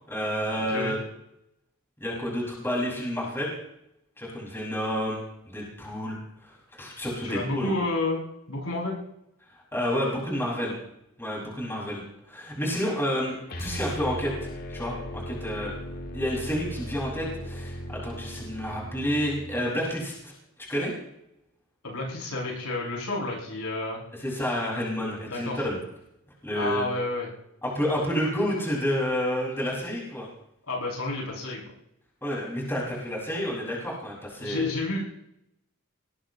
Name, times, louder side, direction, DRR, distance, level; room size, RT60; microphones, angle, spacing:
voice 1, 0.1-1.0 2.0-3.5 4.2-7.7 9.7-10.8 11.2-13.3 13.6-15.7 16.1-20.3 20.7-20.9 24.2-25.8 26.4-26.8 27.6-30.3 32.2-34.7, equal, 10° left, -4 dB, 6.4 m, -30 dB
voice 2, 7.2-8.2 8.5-9.0 21.8-24.0 25.3-25.6 26.5-27.3 30.7-31.6 34.4-35.1, left 2 dB, 85° left, -4 dB, 7.9 m, -30 dB
sound 1, 13.5-19.6, equal, 45° left, 1.7 m, -37 dB
20.0 x 20.0 x 3.3 m, 0.79 s
head